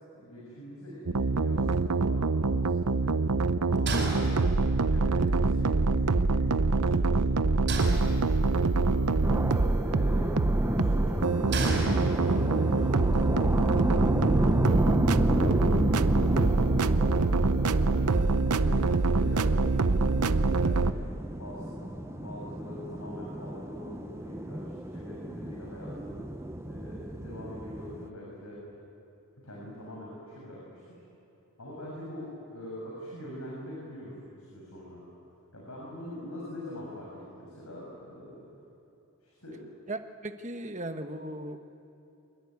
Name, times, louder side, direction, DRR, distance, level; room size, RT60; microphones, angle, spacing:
voice 1, 0.1-9.0 9.8-10.3 10.7-17.1 17.8-18.1 18.4-21.0 21.4-26.2 26.6-28.6 29.4-31.0 31.6-35.0 35.5-37.1 37.3-38.4 39.2-39.6, equal, 75° left, -4 dB, 6.6 m, -43 dB
sound 1, 1.1-20.9, right 3 dB, 90° right, 0.8 m, -25 dB
sound 2, 3.9-4.9 7.7-8.7 11.5-12.6, right 2 dB, 50° right, 5.6 m, -32 dB
sound 3, 9.2-28.1, right 1 dB, 10° right, 0.7 m, -32 dB
voice 2, 39.9-41.6, right 1 dB, 30° right, 7 dB, 1.3 m, -37 dB
25.0 x 22.0 x 9.5 m, 2.9 s
head